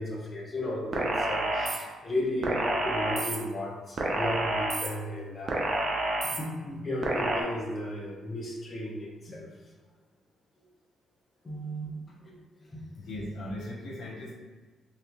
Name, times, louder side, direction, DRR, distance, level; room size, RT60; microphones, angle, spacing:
voice 1, 0.0-5.6 6.2-9.5 11.4-11.9 12.2-12.4 12.6-12.8, left 1 dB, 35° left, -2 dB, 0.9 m, -34 dB
sound 1, 0.9-1.8 2.4-3.4 4.0-4.9 5.5-6.4 7.0-7.4, right 2 dB, 45° right, 0.7 m, -28 dB
voice 2, 13.0-14.3, left 1 dB, 70° left, -3 dB, 0.7 m, -38 dB
3.3 x 3.0 x 3.0 m, 1.4 s
cardioid pair, 90°, 0 cm